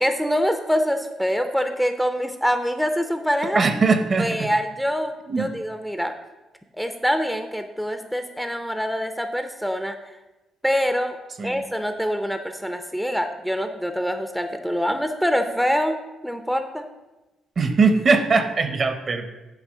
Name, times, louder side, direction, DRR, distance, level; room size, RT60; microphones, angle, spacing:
voice 1, 0.0-3.6 4.2-6.1 6.7-10.0 10.6-11.2 11.4-16.0 16.2-16.9, equal, ahead, 7 dB, 0.6 m, -25 dB
voice 2, 3.5-4.5 5.3-5.5 11.4-11.6 17.6-19.3, right 4 dB, 45° right, 9 dB, 0.8 m, -20 dB
8.2 x 3.1 x 6.2 m, 1.1 s
cardioid pair, 90°, 0 cm